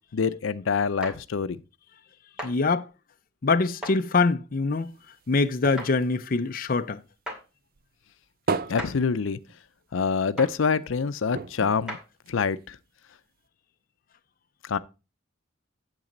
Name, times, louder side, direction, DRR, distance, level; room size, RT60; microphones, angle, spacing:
voice 1, 0.1-1.6 8.7-9.4 9.9-12.0 12.3-12.8 14.6-14.8, left 5 dB, 90° left, 0.5 m, -26 dB
sound 1, 1.0-1.2 2.4-2.5 3.8-4.0 5.8-5.9 7.3-7.4 8.8-9.0 10.4-10.5 11.9-12.1, left 1 dB, 5° right, 2.3 m, -35 dB
voice 2, 2.4-2.9 3.4-4.9 5.3-7.0, left 3 dB, 45° left, 0.6 m, -24 dB
sound 2, 4.7-7.4 7.7-10.0 10.3-10.4 10.7-10.9 11.3-12.8 13.5-13.6, right 4 dB, 50° right, 0.5 m, -36 dB
8.9 x 7.5 x 3.9 m
head